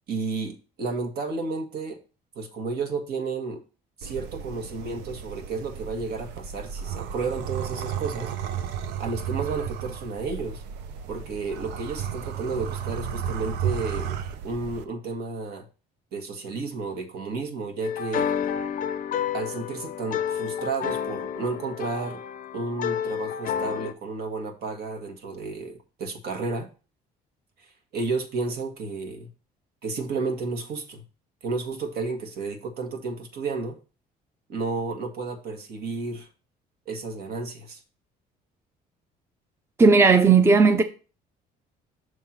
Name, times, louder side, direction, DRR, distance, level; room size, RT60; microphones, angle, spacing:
voice 1, 0.1-2.0 2.3-3.6 4.0-8.3 9.0-10.6 11.1-14.2 14.4-15.6 16.1-18.3 19.3-22.2 22.5-26.7 27.9-29.3 29.8-31.0 31.4-33.8 34.5-36.3 36.9-37.8, right 4 dB, 70° right, 1.5 m, -32 dB
sound 1, 4.0-14.8, right 8 dB, 90° right, 0.7 m, -33 dB
sound 2, 17.8-23.9, left 8 dB, 50° left, 0.5 m, -30 dB
voice 2, 39.8-40.8, right 4 dB, 15° right, 0.6 m, -15 dB
6.4 x 3.5 x 5.9 m
cardioid pair, 110°, 17 cm